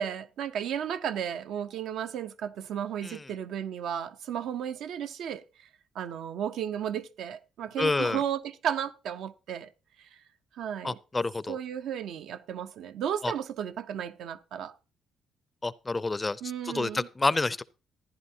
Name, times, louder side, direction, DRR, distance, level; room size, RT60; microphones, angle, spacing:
voice 1, 0.0-5.4 5.9-9.7 10.6-11.0 11.5-14.7 16.4-17.1, right 9 dB, 80° right, 0.7 m, -34 dB
voice 2, 7.8-8.2 10.8-11.6 13.2-13.3 15.6-17.6, left 3 dB, 20° left, 0.5 m, -29 dB
14.5 x 10.5 x 2.8 m
cardioid pair, 90°, 0 cm